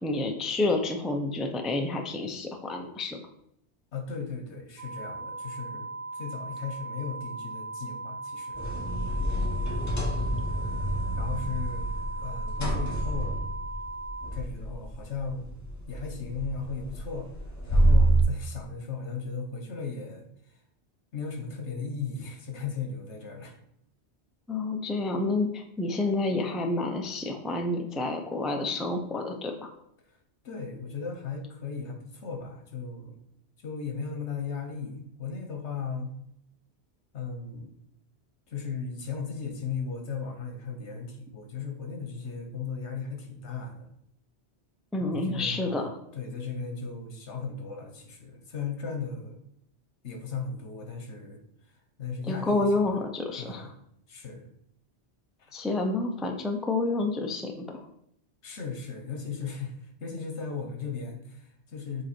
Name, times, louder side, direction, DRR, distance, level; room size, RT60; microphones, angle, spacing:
voice 1, 0.0-3.2 24.5-29.5 44.9-46.0 52.3-53.7 55.5-57.8, left 2 dB, ahead, 3 dB, 0.4 m, -29 dB
voice 2, 3.9-8.6 11.2-11.9 12.2-13.5 14.3-15.5 15.9-17.3 17.7-20.3 21.1-23.6 30.1-30.2 30.4-33.2 33.6-36.2 37.1-37.7 38.5-43.9 45.0-49.4 50.0-51.4 52.0-52.9 53.4-53.7 54.1-54.5 55.4-55.5 58.4-62.0, left 5 dB, 80° left, 4 dB, 1.3 m, -36 dB
sound 1, 4.8-14.3, right 3 dB, 60° right, 1.0 m, -38 dB
sound 2, 8.5-18.2, right 1 dB, 15° left, 0.9 m, -28 dB
7.7 x 3.1 x 4.3 m, 0.74 s
omnidirectional pair, 1.2 m